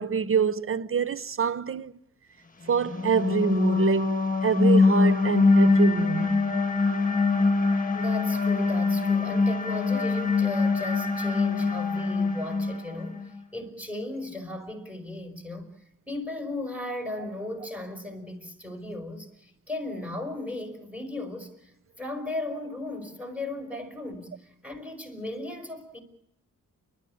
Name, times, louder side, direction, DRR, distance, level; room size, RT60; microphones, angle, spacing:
voice 1, 0.0-1.9 2.7-6.5, right 6 dB, 45° right, 0.8 m, -26 dB
sound 1, 2.8-13.3, left 4 dB, 25° left, 1.6 m, -23 dB
voice 2, 7.9-15.7 16.1-21.7 22.0-26.0, left 2 dB, 5° right, 5.1 m, -36 dB
29.5 x 13.0 x 8.6 m
wide cardioid pair, 95°, 32 cm